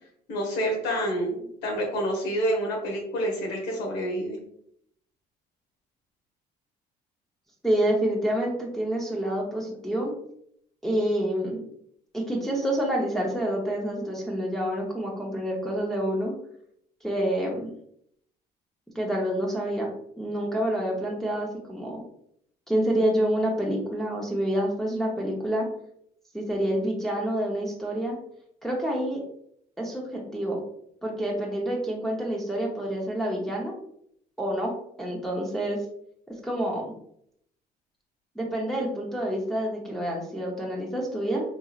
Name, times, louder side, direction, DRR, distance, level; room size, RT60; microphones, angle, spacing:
voice 1, 0.3-4.4, equal, 85° left, 0 dB, 1.2 m, -28 dB
voice 2, 7.6-10.1 10.8-11.6 12.1-16.3 17.0-17.7 18.9-19.9 20.2-22.0 22.7-25.7 26.3-28.2 28.6-29.2 29.8-30.6 31.0-33.7 34.4-34.7 35.0-35.8 36.4-36.9 38.3-41.4, right 1 dB, ahead, -3 dB, 0.8 m, -27 dB
4.0 x 2.7 x 2.4 m, 0.69 s
cardioid pair, 110°, 17 cm